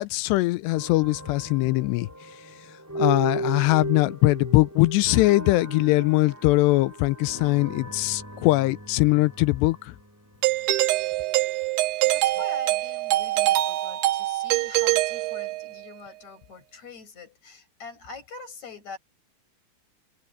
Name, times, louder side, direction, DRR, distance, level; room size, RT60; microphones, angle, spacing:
voice 1, 0.0-2.1 3.0-9.9, left 20 dB, 80° left, 2.6 m, -21 dB
sound 1, 0.7-10.8, right 1 dB, 5° right, 4.0 m, -36 dB
Doorbell, 10.4-15.9, right 17 dB, 90° right, 3.4 m, -24 dB
voice 2, 12.0-19.0, left 4 dB, 40° left, 9.3 m, -44 dB
open air
omnidirectional pair, 5.2 m